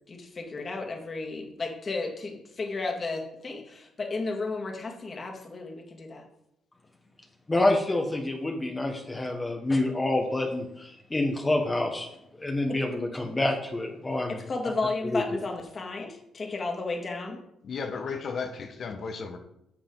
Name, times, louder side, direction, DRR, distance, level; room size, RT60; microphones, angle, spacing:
voice 1, 0.1-6.2 12.7-12.8 14.5-17.4, left 3 dB, 40° left, 1 dB, 2.2 m, -33 dB
voice 2, 7.5-12.1 12.4-14.4 15.0-15.2, left 2 dB, 20° left, 1 dB, 1.3 m, -27 dB
voice 3, 17.6-19.4, left 5 dB, 55° left, 5 dB, 1.3 m, -34 dB
10.5 x 6.9 x 4.0 m, 0.82 s
cardioid pair, 90°, 0 cm